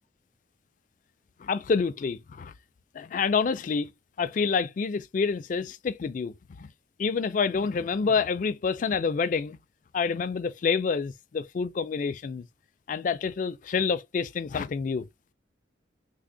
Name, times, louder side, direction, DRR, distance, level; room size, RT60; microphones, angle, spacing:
voice 1, 1.4-2.5 2.9-3.9 4.2-6.7 7.0-9.6 9.9-12.5 12.9-15.1, left 5 dB, 45° left, 0.3 m, -28 dB
3.4 x 2.1 x 3.7 m
head